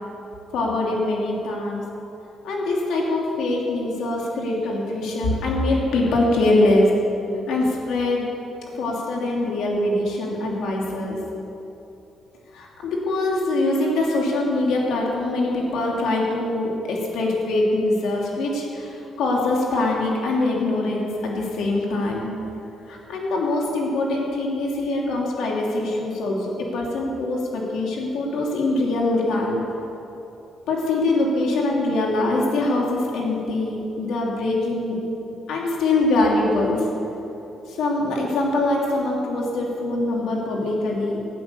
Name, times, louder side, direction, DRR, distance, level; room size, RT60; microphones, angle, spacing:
voice 1, 0.5-1.8 2.4-6.9 7.5-8.2 8.7-11.2 12.5-22.3 22.9-29.6 30.7-35.0 35.5-36.9 37.7-41.2, left 2 dB, 80° left, -2 dB, 2.7 m, -23 dB
17.0 x 9.0 x 6.7 m, 3.0 s
cardioid pair, 90°, 0 cm